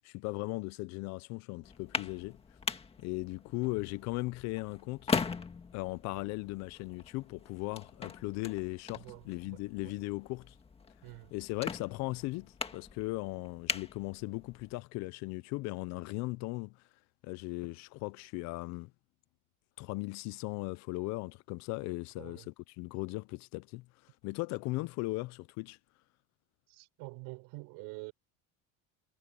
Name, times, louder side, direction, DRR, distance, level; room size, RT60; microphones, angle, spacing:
voice 1, 0.0-2.4 3.0-5.1 5.7-10.6 11.3-16.8 17.2-18.9 19.8-23.9 24.2-25.8, left 23 dB, 45° left, 0.4 m, -38 dB
sound 1, 1.6-14.7, left 5 dB, 15° left, 1.9 m, -41 dB
voice 2, 9.0-9.9 11.0-11.3 22.2-22.5 26.7-28.1, right 25 dB, 65° right, 4.5 m, -47 dB
cardioid pair, 175°, 39 cm